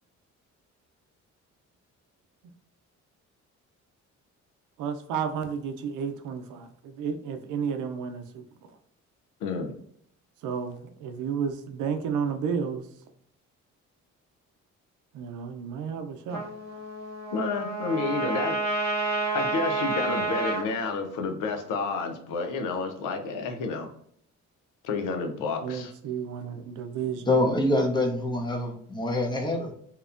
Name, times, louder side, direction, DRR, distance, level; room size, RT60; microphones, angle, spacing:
voice 1, 4.8-8.4 10.4-12.8 15.1-16.5 25.6-27.3, right 7 dB, 85° right, 6 dB, 0.5 m, -32 dB
voice 2, 9.4-9.7 17.3-18.6 19.3-23.9 24.8-25.9, left 4 dB, 90° left, 5 dB, 0.6 m, -30 dB
Trumpet, 16.3-20.6, right 3 dB, 60° left, 1.1 m, -29 dB
voice 3, 27.3-29.7, left 1 dB, 15° left, 1 dB, 0.6 m, -25 dB
2.9 x 2.0 x 2.4 m, 0.66 s
cardioid pair, 90°, 30 cm